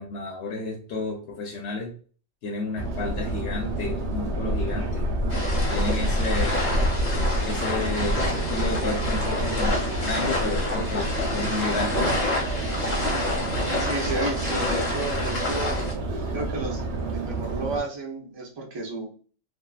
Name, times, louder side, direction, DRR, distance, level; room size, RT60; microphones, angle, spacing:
voice 1, 0.0-1.9 2.4-5.0 5.7-6.7 7.4-12.0, left 3 dB, 65° left, 0 dB, 0.9 m, -31 dB
Subway metro underground, 2.8-17.8, right 1 dB, 70° right, 0.9 m, -28 dB
sound 1, 5.3-15.9, left 2 dB, 40° left, 0.8 m, -29 dB
voice 2, 13.8-15.8 16.3-16.8 17.1-19.1, right 3 dB, 30° right, -1 dB, 0.5 m, -32 dB
2.7 x 2.4 x 2.3 m, 0.41 s
omnidirectional pair, 1.3 m